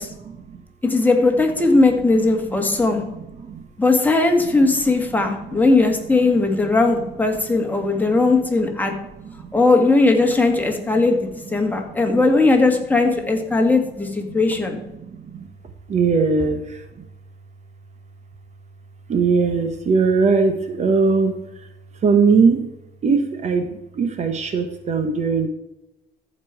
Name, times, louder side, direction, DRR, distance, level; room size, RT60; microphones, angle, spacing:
voice 1, 0.0-0.6 1.8-1.9 2.2-3.7 4.3-7.2 7.4-9.5 10.6-12.2 12.7-12.8 13.1-15.5 15.9-17.0 19.1-22.7 23.0-25.5, right 4 dB, 40° right, 8 dB, 1.0 m, -23 dB
voice 2, 0.8-3.0 3.8-8.9 9.5-14.8, left 3 dB, 10° left, 2 dB, 1.9 m, -18 dB
14.0 x 5.4 x 4.7 m, 0.93 s
cardioid pair, 110°, 17 cm